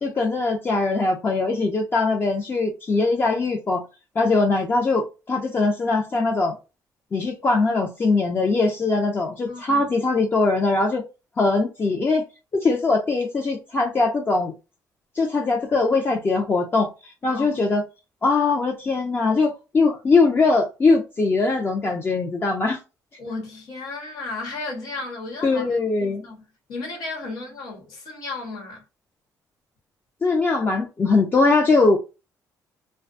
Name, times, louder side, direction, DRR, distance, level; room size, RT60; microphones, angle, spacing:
voice 1, 0.0-3.8 4.2-6.5 7.1-11.0 11.4-12.2 12.6-14.5 15.2-16.9 17.2-17.8 18.2-22.8 25.4-26.2 30.2-32.0, left 3 dB, 30° left, 0.5 m, -21 dB
voice 2, 9.5-9.9 17.3-17.6 23.2-26.4 26.7-28.8, left 3 dB, 85° left, 1.3 m, -34 dB
2.4 x 2.2 x 2.5 m
cardioid pair, 110°, 7 cm